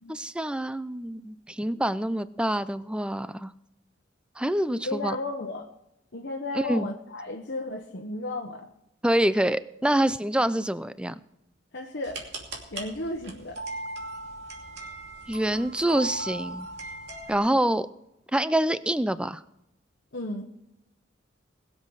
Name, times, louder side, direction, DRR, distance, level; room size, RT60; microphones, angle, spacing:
voice 1, 0.1-3.5 4.4-5.2 6.5-6.9 9.0-11.2 15.3-16.7 17.3-17.9 18.3-19.4, right 1 dB, 5° right, 14 dB, 0.4 m, -26 dB
voice 2, 4.7-5.7 6.1-8.7 11.7-12.3 12.7-13.7 20.1-20.4, left 2 dB, 60° left, 1 dB, 1.1 m, -34 dB
sound 1, 12.0-17.4, right 2 dB, 60° right, 2.7 m, -38 dB
21.0 x 7.6 x 4.8 m, 0.85 s
head